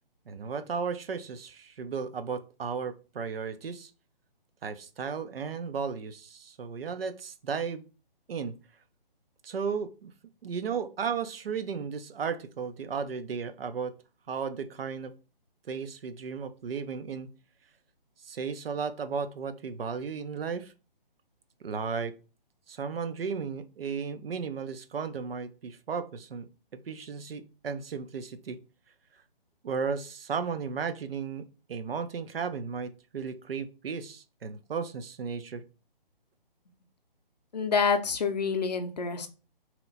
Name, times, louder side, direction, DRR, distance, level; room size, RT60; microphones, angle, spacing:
voice 1, 0.3-3.9 4.6-7.8 8.3-8.5 9.4-10.1 10.4-13.9 14.3-15.1 15.7-17.3 18.2-20.7 21.6-22.1 22.7-26.5 26.9-28.6 29.6-31.4 31.7-35.6, right 6 dB, 80° right, 10 dB, 0.5 m, -34 dB
voice 2, 37.5-39.3, left 5 dB, 45° left, 7 dB, 0.5 m, -27 dB
2.8 x 2.1 x 3.9 m, 0.33 s
hypercardioid pair, 160°, 29 cm